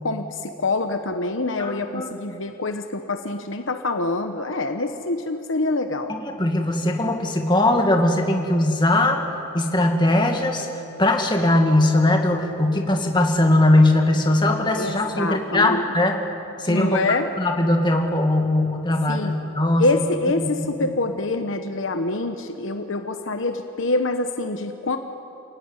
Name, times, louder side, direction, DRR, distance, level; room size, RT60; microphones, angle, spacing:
voice 1, 0.0-6.1 14.8-15.8 16.7-17.3 19.1-19.3 19.8-25.0, left 2 dB, 60° left, 6 dB, 1.0 m, -25 dB
voice 2, 1.6-2.1 6.2-9.2 9.5-10.7 11.0-16.2 16.6-17.0 17.4-19.8 20.4-20.9, left 1 dB, 20° left, 3 dB, 2.0 m, -20 dB
28.0 x 17.5 x 9.8 m, 2.9 s
head